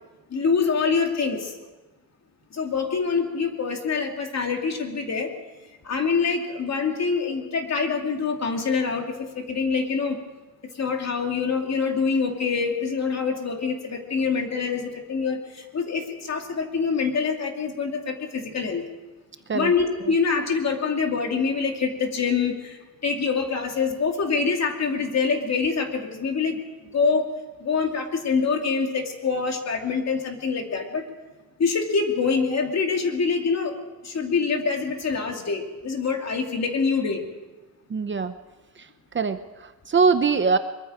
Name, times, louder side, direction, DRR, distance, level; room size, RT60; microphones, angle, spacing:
voice 1, 0.3-1.5 2.5-5.3 5.8-10.2 10.7-18.8 19.5-27.2 27.6-31.0 31.6-33.8 34.0-37.2, left 5 dB, 50° left, 3 dB, 2.6 m, -25 dB
voice 2, 37.9-38.3 39.1-40.6, right 5 dB, 35° right, 10 dB, 0.8 m, -22 dB
23.0 x 23.0 x 5.0 m, 1.1 s
wide cardioid pair, 155°, 35 cm